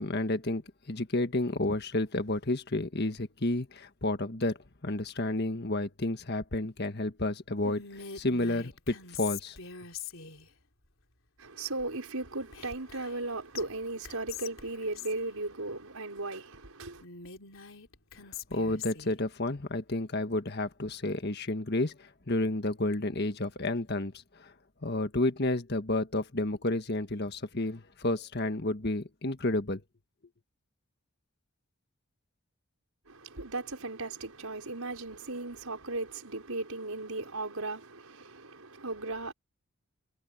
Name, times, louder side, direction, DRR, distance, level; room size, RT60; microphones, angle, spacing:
voice 1, 0.0-4.6 4.8-9.6 18.5-24.1 24.4-24.5 24.8-29.8, left 2 dB, 50° left, 1.6 m, -31 dB
Whispering, 7.6-10.5 12.5-13.3 13.5-13.6 14.0-15.2 17.0-19.1, left 7 dB, 65° left, 3.9 m, -43 dB
voice 2, 11.4-17.0 33.1-39.3, right 2 dB, 80° right, 5.2 m, -37 dB
head